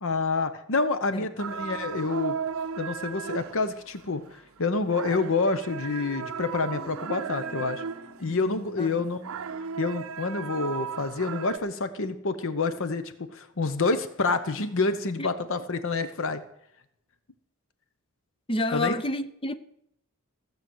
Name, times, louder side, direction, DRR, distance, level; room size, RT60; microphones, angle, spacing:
voice 1, 0.0-2.4 2.8-7.8 8.2-9.2 9.8-16.4 18.7-18.9, left 3 dB, 65° left, 0.9 m, -28 dB
sound 1, 1.4-8.5 8.8-11.6, right 6 dB, 65° right, 0.6 m, -36 dB
sound 2, 6.0-10.7, left 1 dB, 5° right, 2.6 m, -47 dB
voice 2, 18.5-19.5, left 2 dB, 25° left, 0.7 m, -29 dB
15.5 x 6.9 x 7.8 m
head